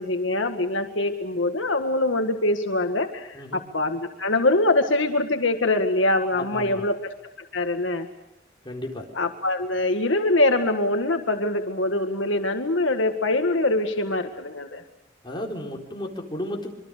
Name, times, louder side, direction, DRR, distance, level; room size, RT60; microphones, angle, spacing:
voice 1, 0.0-7.0 7.5-8.1 9.2-14.8, left 2 dB, 80° left, 6 dB, 1.8 m, -23 dB
voice 2, 6.3-6.9 8.6-9.1 15.2-16.7, left 1 dB, 25° left, 0 dB, 4.3 m, -33 dB
25.5 x 23.5 x 6.7 m, 0.97 s
head